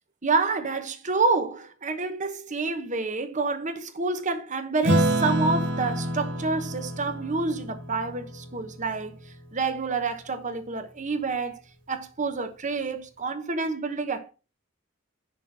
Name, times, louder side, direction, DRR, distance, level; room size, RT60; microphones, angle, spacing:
voice 1, 0.2-9.2 9.5-11.6 11.9-14.3, right 4 dB, 35° right, 1.1 m, -28 dB
Acoustic guitar / Strum, 4.8-9.7, right 1 dB, 60° right, 2.1 m, -28 dB
10.5 x 3.9 x 5.9 m
head